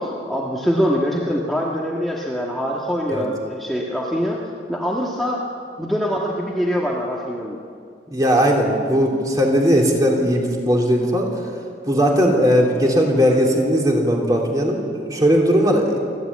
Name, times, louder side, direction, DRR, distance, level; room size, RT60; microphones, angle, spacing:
voice 1, 0.0-4.4 4.7-5.4 5.8-7.6, equal, ahead, -4 dB, 1.6 m, -23 dB
voice 2, 8.1-11.3 11.9-16.0, equal, 20° right, -1 dB, 3.2 m, -18 dB
29.0 x 12.0 x 8.6 m, 2.3 s
head